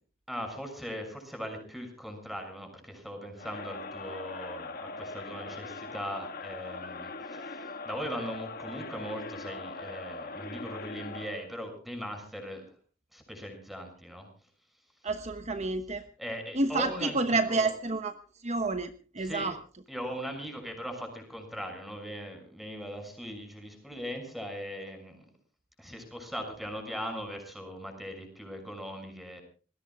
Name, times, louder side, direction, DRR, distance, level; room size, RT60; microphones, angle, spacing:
voice 1, 0.3-12.6 13.1-14.3 16.2-17.7 19.2-19.5 19.9-25.2 25.8-29.4, equal, ahead, 5 dB, 6.6 m, -39 dB
Crowd, 3.4-11.5, left 3 dB, 55° left, 1.8 m, -41 dB
voice 2, 15.0-16.1 16.6-18.1 18.4-19.5, right 3 dB, 40° right, 8 dB, 1.1 m, -29 dB
27.5 x 21.5 x 2.4 m, 0.39 s
head